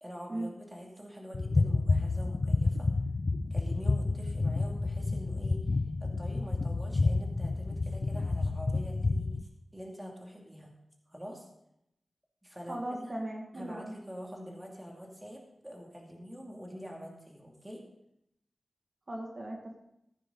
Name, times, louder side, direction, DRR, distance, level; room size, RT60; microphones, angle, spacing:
voice 1, 0.0-2.9 3.5-5.6 6.0-9.3 9.7-10.7 11.1-11.5 12.4-13.1 13.5-17.8, equal, 10° right, 0 dB, 2.6 m, -45 dB
sound 1, 1.3-9.4, left 3 dB, 50° left, 0.5 m, -29 dB
voice 2, 12.7-13.9 19.1-19.8, right 1 dB, 45° right, 0 dB, 2.2 m, -37 dB
15.0 x 9.9 x 4.0 m, 0.79 s
wide cardioid pair, 80°, 0 cm